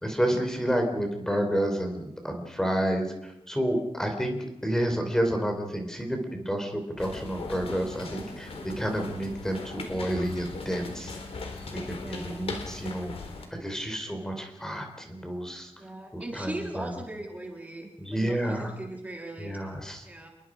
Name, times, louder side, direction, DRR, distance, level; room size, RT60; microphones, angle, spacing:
voice 1, 0.0-4.4 4.6-11.2 11.7-13.1 13.5-15.7 16.1-16.9 18.0-18.7 19.4-20.1, equal, 5° left, 3 dB, 3.5 m, -30 dB
sound 1, 7.0-13.4, left 3 dB, 75° left, 3.9 m, -39 dB
voice 2, 11.9-12.5 14.2-14.4 15.7-19.5 20.0-20.3, right 1 dB, 15° right, 0 dB, 3.2 m, -40 dB
28.0 x 22.0 x 5.0 m, 0.88 s
wide cardioid pair, 160°, 10 cm